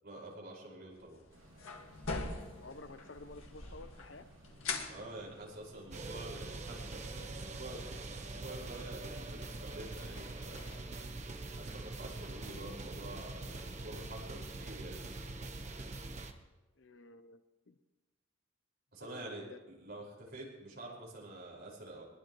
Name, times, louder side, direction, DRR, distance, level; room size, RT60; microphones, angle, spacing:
voice 1, 0.0-1.2 4.8-10.6 11.6-15.0 18.9-22.0, right 1 dB, 50° right, -3 dB, 5.4 m, -48 dB
sound 1, 0.9-12.5, left 3 dB, 90° left, 1.9 m, -47 dB
sound 2, 1.3-7.7, right 1 dB, 80° right, 3.1 m, -60 dB
voice 2, 2.6-4.3 16.8-17.8 19.0-19.6, left 3 dB, 65° left, 10 dB, 0.8 m, -52 dB
sound 3, 5.9-16.3, right 2 dB, 35° right, 1.1 m, -44 dB
21.5 x 20.5 x 3.1 m, 1.2 s
head